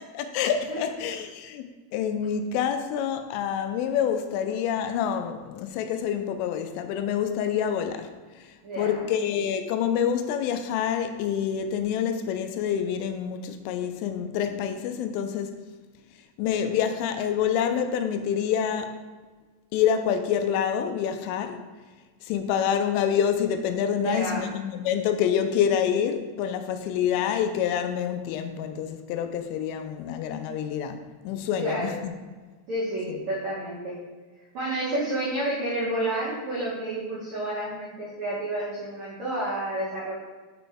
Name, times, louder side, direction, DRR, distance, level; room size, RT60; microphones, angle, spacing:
voice 1, 0.1-1.7 1.9-8.1 8.8-15.6 16.4-19.0 19.7-21.6 22.2-32.1 33.1-33.2, left 8 dB, 85° left, 3.1 m, -27 dB
voice 2, 8.6-9.0 24.0-24.5 31.6-32.0 32.7-34.0 34.5-40.1, right 1 dB, 85° right, 1.5 m, -30 dB
6.5 x 6.1 x 3.4 m
omnidirectional pair, 5.7 m